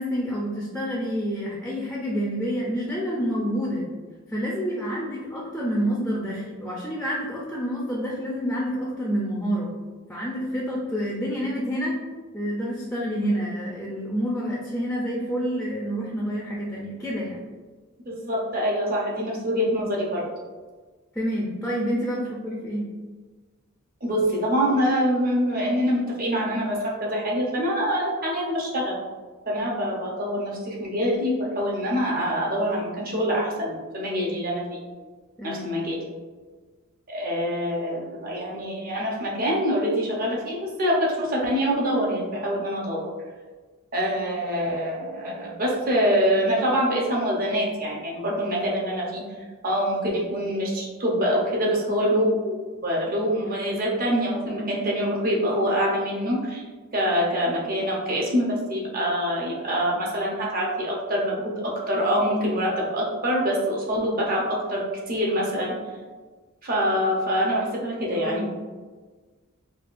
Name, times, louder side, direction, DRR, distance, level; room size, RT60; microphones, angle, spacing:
voice 1, 0.0-3.9 4.3-9.7 10.1-12.0 12.3-17.4 21.1-22.9 35.4-35.7 68.1-68.5, equal, 5° left, -5 dB, 0.5 m, -28 dB
voice 2, 18.1-20.3 24.0-29.0 29.5-34.6 35.4-36.0 37.1-43.0 43.9-49.2 49.6-52.6 52.8-56.6 56.9-65.7 66.6-68.5, equal, 45° right, -3 dB, 0.8 m, -25 dB
4.8 x 2.4 x 2.5 m, 1.4 s
head